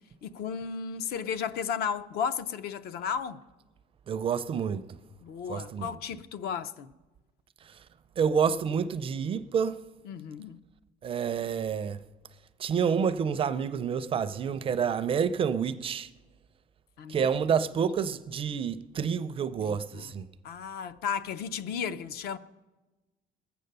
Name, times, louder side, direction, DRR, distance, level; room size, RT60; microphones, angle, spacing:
voice 1, 0.2-3.4 5.2-6.9 10.1-10.6 17.0-17.3 19.7-20.1 20.4-22.4, left 7 dB, 60° left, 0.6 m, -34 dB
voice 2, 4.1-5.0 5.5-6.0 8.2-9.8 11.0-12.0 12.6-16.1 17.1-20.2, right 7 dB, 30° right, 0.4 m, -28 dB
20.0 x 7.8 x 6.7 m
cardioid pair, 165°, 18 cm